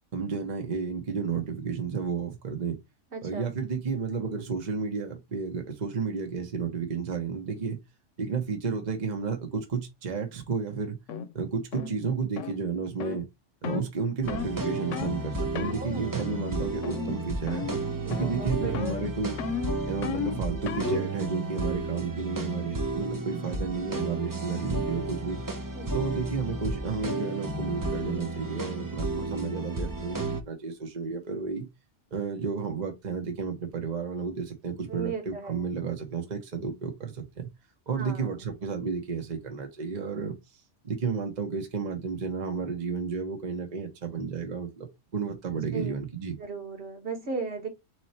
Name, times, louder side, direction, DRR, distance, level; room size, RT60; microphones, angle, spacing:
voice 1, 0.1-2.8 3.2-7.8 8.2-11.0 11.3-13.3 13.6-17.7 18.1-19.4 19.9-25.4 25.9-30.2 30.5-31.7 32.1-37.5 37.9-40.3 40.8-46.3, right 5 dB, 40° right, 1.0 m, -32 dB
voice 2, 3.1-3.5 15.7-16.2 18.0-18.8 25.7-26.0 26.2-26.4 34.8-35.7 38.0-38.5 45.7-45.9 46.4-47.7, right 4 dB, 65° right, 1.6 m, -36 dB
sound 1, 11.1-11.3 11.7-11.9 12.4-12.6 13.0-13.2 13.6-13.9 14.3-14.5 14.9-15.2 15.5-15.8 16.2-16.5 16.8-17.2 17.5-17.8 18.1-18.5 18.7-21.1, left 7 dB, 80° left, 1.0 m, -34 dB
sound 2, 14.2-30.4, right 2 dB, 25° right, 0.5 m, -32 dB
3.8 x 3.2 x 4.2 m
omnidirectional pair, 1.3 m